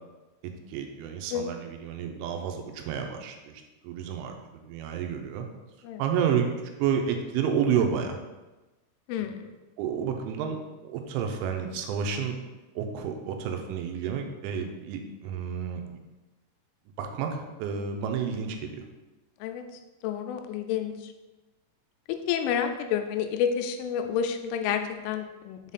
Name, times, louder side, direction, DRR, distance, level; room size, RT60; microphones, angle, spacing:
voice 1, 0.4-5.5 6.0-6.5 6.8-8.2 9.2-9.5 9.8-10.6 10.8-12.4 12.8-15.8 17.0-18.9, right 7 dB, 90° right, 4 dB, 3.1 m, -30 dB
voice 2, 20.0-20.9 22.3-25.6, left 8 dB, 90° left, 5 dB, 3.1 m, -29 dB
7.0 x 3.7 x 4.1 m, 1.1 s
omnidirectional pair, 5.5 m